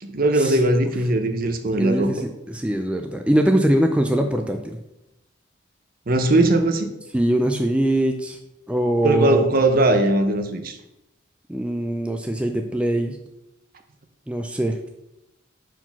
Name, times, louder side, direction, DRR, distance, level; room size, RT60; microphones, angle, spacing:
voice 1, 0.0-2.1 6.1-6.9 9.0-10.8, right 2 dB, 50° right, 7 dB, 0.8 m, -19 dB
voice 2, 1.8-4.8 7.1-8.4 8.7-9.4 11.5-13.2 14.3-14.8, right 1 dB, 5° right, 4 dB, 0.4 m, -22 dB
5.9 x 4.6 x 5.8 m, 0.88 s
head